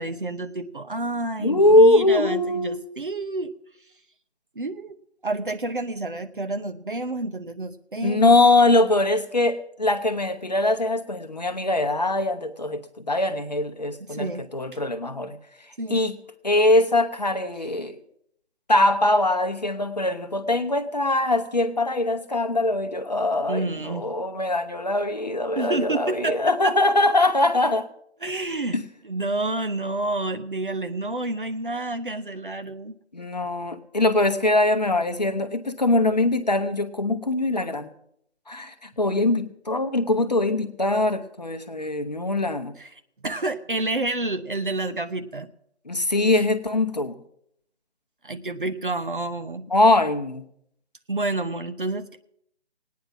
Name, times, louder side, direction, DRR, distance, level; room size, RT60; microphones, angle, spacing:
voice 1, 0.0-3.5 4.5-5.0 5.2-8.3 14.1-14.4 15.8-16.0 23.5-24.1 24.3-24.5 25.6-26.7 28.2-28.8 29.0-33.0 42.8-42.9 43.2-45.5 46.3-46.4 48.2-49.6 51.1-52.2, right 2 dB, 50° right, 9 dB, 0.8 m, -29 dB
voice 2, 1.4-2.8 8.0-15.4 15.9-16.2 16.4-18.0 18.7-27.9 28.7-28.8 33.1-37.9 38.5-42.7 45.9-47.1 49.7-50.5, left 2 dB, 40° left, 8 dB, 0.8 m, -22 dB
18.0 x 9.4 x 6.0 m, 0.72 s
figure-of-eight pair, 160°, 33 cm